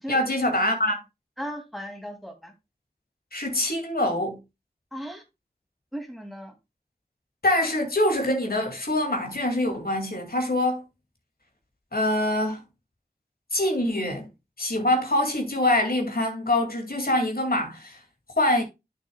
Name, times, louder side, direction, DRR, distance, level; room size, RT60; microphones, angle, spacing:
voice 1, 0.1-1.0 3.3-4.4 7.4-10.8 11.9-12.6 13.5-14.3 14.6-18.0 18.4-18.6, left 1 dB, 70° left, 2.3 m, -24 dB
voice 2, 1.4-2.5 4.9-5.2 5.9-6.5, equal, ahead, 2.8 m, -36 dB
11.0 x 6.6 x 2.3 m
wide cardioid pair, 40°, 16 cm